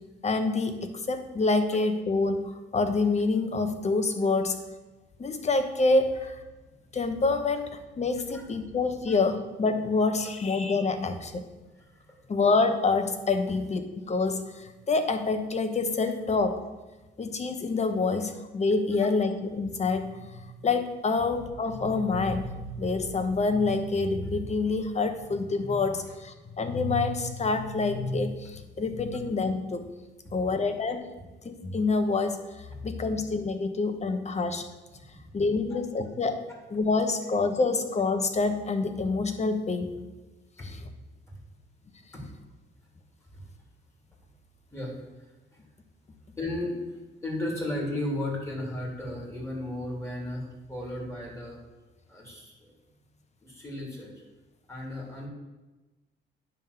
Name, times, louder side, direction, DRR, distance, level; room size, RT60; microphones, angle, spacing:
voice 1, 0.2-2.4 2.7-4.6 5.2-6.3 6.9-11.4 12.3-16.6 17.2-29.8 30.3-31.0 31.4-34.6 35.3-36.4 36.7-39.9 40.6-40.8, left 3 dB, 35° left, 7 dB, 1.0 m, -27 dB
voice 2, 11.7-12.2 19.0-19.1 30.2-30.3 32.7-33.1 35.1-35.2 35.7-35.8 40.6-40.7 42.1-42.3 43.3-43.4 44.7-44.9 45.5-45.6 46.4-46.8 47.2-51.6 52.1-52.7 53.4-54.1 54.7-55.3, left 1 dB, 15° left, -2 dB, 3.1 m, -35 dB
9.8 x 3.7 x 6.7 m, 1.1 s
cardioid pair, 90°, 20 cm